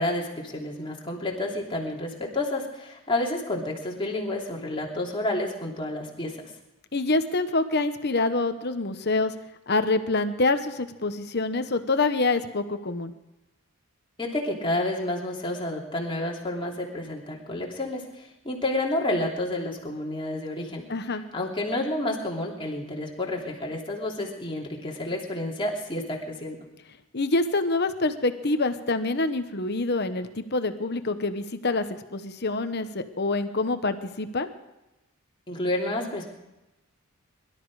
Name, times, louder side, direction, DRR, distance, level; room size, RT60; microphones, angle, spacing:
voice 1, 0.0-6.4 14.2-20.8 21.3-26.6 35.5-36.3, left 1 dB, 25° left, -1 dB, 3.0 m, -30 dB
voice 2, 6.9-9.3 9.7-13.1 20.9-21.2 27.1-34.5, left 3 dB, 50° left, 9 dB, 1.1 m, -26 dB
22.5 x 12.5 x 4.9 m, 0.96 s
head